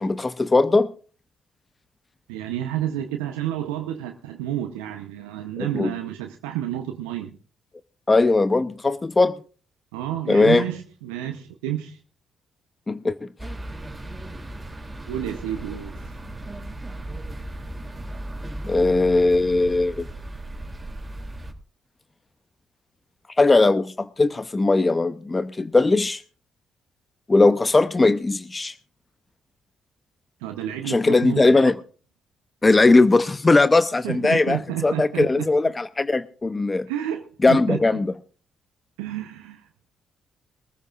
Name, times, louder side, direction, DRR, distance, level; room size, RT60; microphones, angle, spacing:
voice 1, 0.0-0.9 5.6-5.9 8.1-9.3 10.3-10.7 12.9-13.3 18.7-20.0 23.4-26.2 27.3-28.7 30.9-31.8 32.6-36.9 37.4-38.1, left 3 dB, 25° left, 0.7 m, -19 dB
voice 2, 2.3-7.4 9.9-12.0 15.1-16.2 30.4-31.7 34.0-35.5 36.9-37.8 39.0-39.7, right 12 dB, 85° right, 0.8 m, -30 dB
sound 1, 13.4-21.5, right 1 dB, 20° right, 3.0 m, -36 dB
23.0 x 14.5 x 2.5 m
hypercardioid pair, 50°, 0 cm